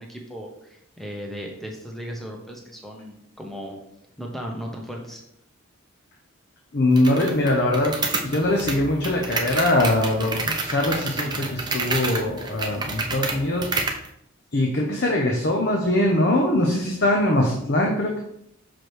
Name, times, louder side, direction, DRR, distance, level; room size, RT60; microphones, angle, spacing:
voice 1, 0.0-3.8 4.2-5.2, equal, ahead, 0 dB, 0.9 m, -36 dB
voice 2, 6.7-8.0 8.2-13.7 14.5-18.2, left 1 dB, 55° left, 1 dB, 0.7 m, -22 dB
sound 1, 7.0-14.1, right 3 dB, 20° right, 0.6 m, -29 dB
6.0 x 5.0 x 3.2 m, 0.74 s
head